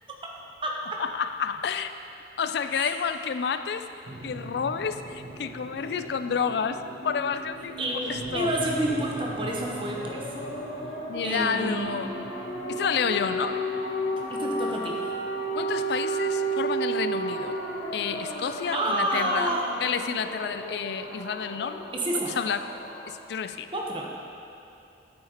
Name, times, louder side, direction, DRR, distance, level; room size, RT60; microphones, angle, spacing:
voice 1, 1.0-1.9 2.4-3.9 4.2-7.8 8.1-8.6 11.1-12.1 12.7-13.6 15.5-17.5 17.9-19.5 19.8-21.8 22.3-22.7 23.1-23.7, left 6 dB, 65° left, 10 dB, 0.3 m, -30 dB
sound 1, 4.0-18.7, right 1 dB, 85° right, 0.9 m, -42 dB
voice 2, 7.8-10.2 11.2-12.2 14.3-15.0 18.7-19.7 21.9-22.4 23.7-24.1, right 1 dB, 25° right, -1 dB, 0.8 m, -29 dB
sound 2, 8.3-23.1, right 2 dB, 85° left, 1.1 m, -33 dB
9.6 x 8.6 x 2.9 m, 2.6 s
head